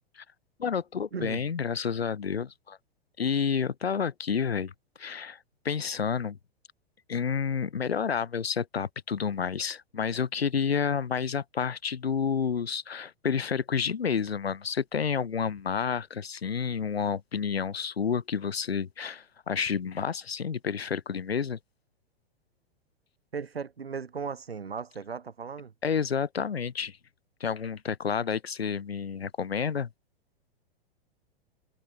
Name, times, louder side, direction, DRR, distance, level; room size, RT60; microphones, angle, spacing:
voice 1, 0.6-2.8 3.2-4.7 5.0-5.4 5.6-6.4 7.1-21.6 25.8-27.0 27.4-29.9, left 6 dB, 85° left, 0.8 m, -30 dB
voice 2, 1.1-1.5 23.3-25.7, right 6 dB, 85° right, 0.9 m, -37 dB
figure-of-eight pair, 100°, 30 cm